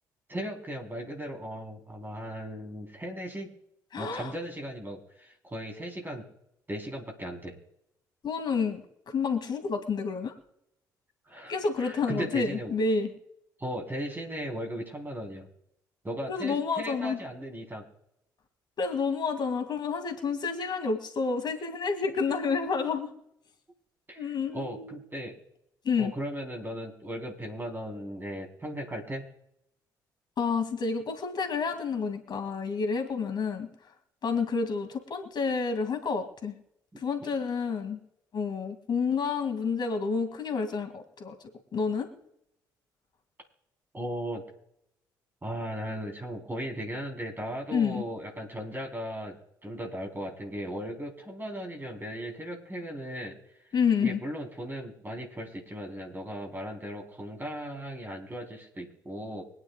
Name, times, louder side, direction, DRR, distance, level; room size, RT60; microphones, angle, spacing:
voice 1, 0.3-3.5 3.9-6.2 6.7-7.5 11.2-12.7 13.6-15.5 16.0-17.9 24.1-25.4 26.0-29.3 43.9-44.4 45.4-49.4 49.6-53.3 54.0-59.4, equal, 20° right, 2 dB, 3.9 m, -37 dB
voice 2, 3.9-4.3 8.2-10.3 11.5-13.1 16.3-17.2 18.8-23.1 24.2-25.0 25.8-26.1 30.4-33.9 34.2-36.5 37.0-38.0 38.3-41.4 41.7-42.1 47.7-48.0 53.7-54.2, left 5 dB, 45° left, 5 dB, 2.3 m, -29 dB
24.5 x 9.9 x 2.4 m, 0.78 s
figure-of-eight pair, 45°, 10 cm